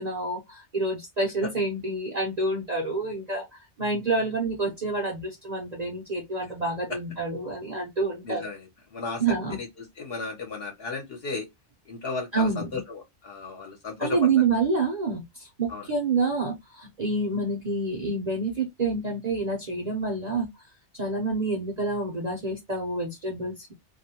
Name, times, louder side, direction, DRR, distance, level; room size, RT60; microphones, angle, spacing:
voice 1, 0.0-8.5 9.2-9.6 12.3-12.8 14.0-20.5 21.0-23.7, right 3 dB, 40° right, 0.7 m, -28 dB
voice 2, 8.2-8.6 8.9-9.2 9.6-9.7 10.0-11.5 11.9-12.5 12.9-14.2 15.7-15.9, left 4 dB, 55° left, 0.9 m, -34 dB
2.4 x 2.1 x 2.7 m
omnidirectional pair, 1.3 m